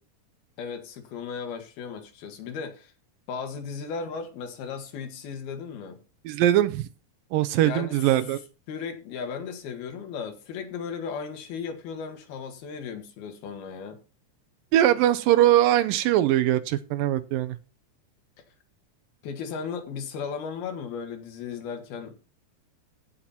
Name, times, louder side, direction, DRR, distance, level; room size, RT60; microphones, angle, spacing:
voice 1, 0.6-2.9 3.3-6.0 7.6-8.1 8.7-14.0 19.2-22.1, left 6 dB, 85° left, 3.8 m, -36 dB
voice 2, 6.3-6.8 7.3-8.4 14.7-17.6, right 13 dB, 80° right, 2.3 m, -21 dB
16.0 x 5.9 x 4.2 m
omnidirectional pair, 4.3 m